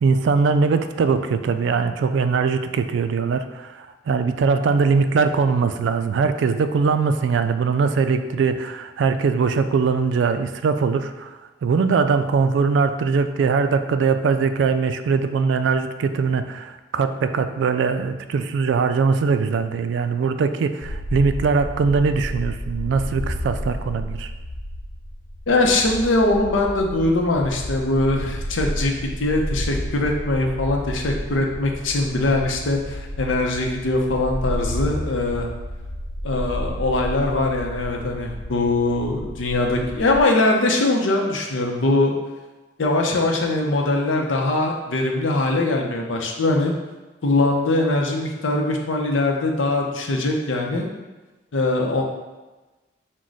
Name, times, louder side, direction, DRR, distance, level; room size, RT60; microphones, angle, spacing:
voice 1, 0.0-24.3, right 5 dB, 70° right, 10 dB, 0.3 m, -21 dB
sound 1, 20.8-40.2, equal, 40° left, 0.5 m, -31 dB
voice 2, 25.5-35.5 36.2-42.1 42.8-46.7 47.2-50.9 51.5-52.0, left 2 dB, 85° left, 1 dB, 0.6 m, -22 dB
6.1 x 2.2 x 3.9 m, 1.2 s
head